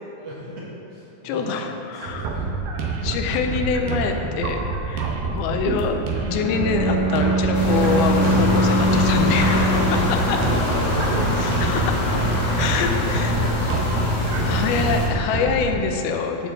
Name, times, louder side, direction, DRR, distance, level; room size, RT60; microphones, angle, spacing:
voice 1, 0.2-1.5 1.9-2.5 9.5-9.6 10.1-11.5 12.5-15.3, right 1 dB, 45° right, -8 dB, 2.3 m, -37 dB
voice 2, 1.2-2.3 3.0-9.8 10.1-10.4 11.4-12.0 12.6-13.4 14.4-16.5, left 5 dB, 85° left, 4 dB, 2.1 m, -25 dB
sound 1, 2.0-15.8, right 4 dB, 80° right, 2.2 m, -27 dB
Bowed string instrument, 6.3-10.3, equal, 65° right, 3.1 m, -22 dB
sound 2, 7.5-15.1, left 2 dB, 65° left, 1.7 m, -23 dB
8.7 x 4.7 x 7.4 m, 2.9 s
omnidirectional pair, 5.0 m